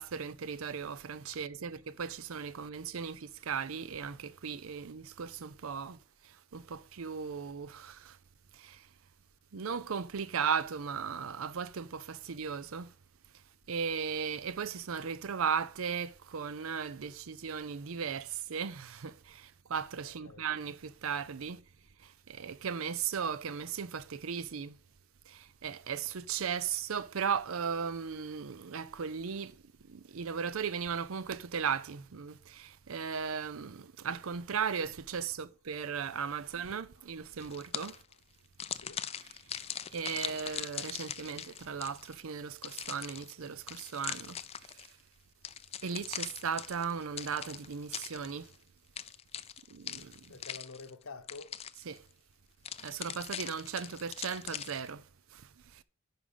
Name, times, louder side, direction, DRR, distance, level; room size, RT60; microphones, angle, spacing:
voice 1, 0.0-6.0 6.2-8.2 8.5-8.9 9.5-12.9 13.7-21.6 22.0-24.8 25.3-38.0 39.2-39.6 39.9-44.9 45.8-48.5 49.7-50.3 51.9-52.1 52.8-55.8, right 6 dB, 75° right, 0.6 m, -37 dB
voice 2, 20.0-20.5 38.8-39.0 50.3-51.5, left 3 dB, 80° left, 1.1 m, -48 dB
sound 1, 37.4-38.1 38.6-42.2 42.6-44.9 45.4-48.5 48.9-51.0 51.3-52.0 52.6-54.9, left 9 dB, 30° left, 0.4 m, -41 dB
10.0 x 5.0 x 5.5 m
head